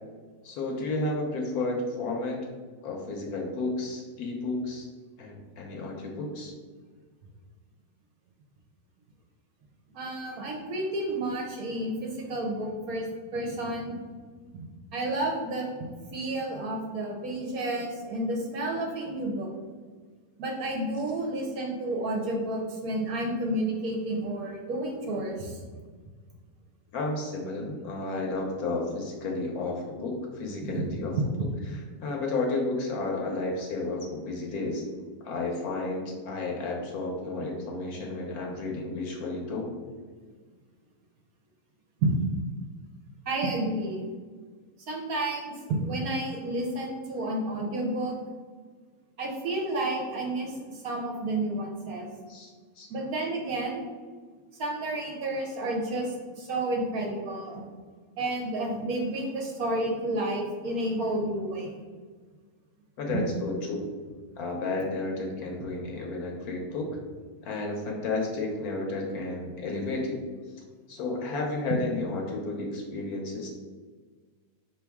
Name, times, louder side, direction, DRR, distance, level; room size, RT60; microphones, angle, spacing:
voice 1, 0.4-2.5 2.8-4.9 5.2-6.5 26.9-31.1 32.0-34.8 35.2-39.7 52.3-52.9 63.0-63.9 64.4-66.9 67.4-70.2 70.9-73.5, left 2 dB, 65° left, 0 dB, 1.1 m, -32 dB
voice 2, 9.9-14.0 14.9-19.5 20.4-25.6 30.6-31.5 42.0-42.1 43.3-44.0 44.9-48.1 49.2-52.1 52.9-53.9 54.6-57.6 58.2-61.7 63.1-63.2, right 1 dB, 65° right, 0 dB, 1.0 m, -31 dB
5.0 x 3.0 x 3.4 m, 1.5 s
omnidirectional pair, 1.9 m